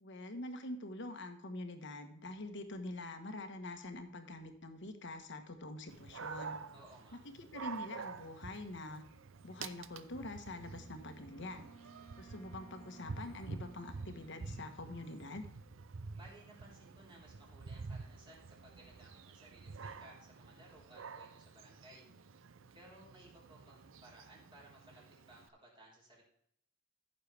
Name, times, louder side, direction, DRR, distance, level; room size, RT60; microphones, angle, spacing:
voice 1, 0.0-6.6 7.4-9.0 9.4-11.6 12.2-15.4, left 2 dB, 65° left, 7 dB, 1.3 m, -45 dB
Dog, 5.9-25.5, right 4 dB, 75° right, 0.6 m, -49 dB
voice 2, 6.7-7.2 16.2-22.0 22.7-26.2, right 1 dB, 25° right, -4 dB, 4.0 m, -59 dB
Wind instrument woodwind instrument, 10.3-15.7, right 5 dB, 5° left, 2.5 m, -60 dB
14.5 x 6.7 x 3.4 m, 0.68 s
head